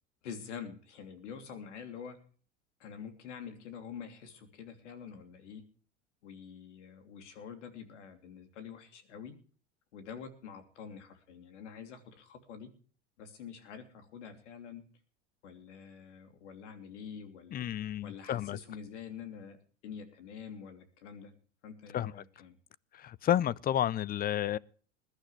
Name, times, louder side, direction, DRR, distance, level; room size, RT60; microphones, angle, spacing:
voice 1, 0.2-2.2 2.8-5.6 6.2-9.4 9.9-12.7 13.2-14.8 15.4-17.6 18.0-19.6 19.8-21.3 21.6-22.6, left 7 dB, 75° left, 3.1 m, -46 dB
voice 2, 17.5-18.6 21.9-22.1 22.9-24.6, left 11 dB, 25° left, 0.5 m, -31 dB
20.5 x 12.0 x 3.3 m
hypercardioid pair, 90°, 36 cm